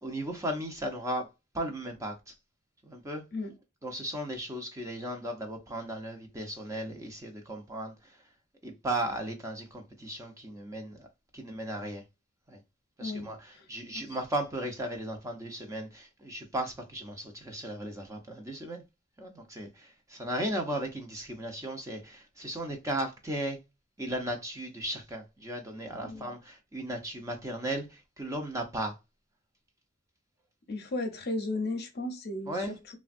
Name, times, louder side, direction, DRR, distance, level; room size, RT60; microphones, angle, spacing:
voice 1, 0.0-1.3 1.5-2.3 2.8-3.3 3.8-8.2 8.6-11.1 11.3-12.0 12.5-12.6 13.0-18.8 19.2-23.6 24.0-29.0 32.5-32.8, right 1 dB, 15° right, 0.5 m, -36 dB
voice 2, 30.7-32.7, left 2 dB, 55° left, 0.6 m, -34 dB
3.3 x 2.2 x 2.5 m
head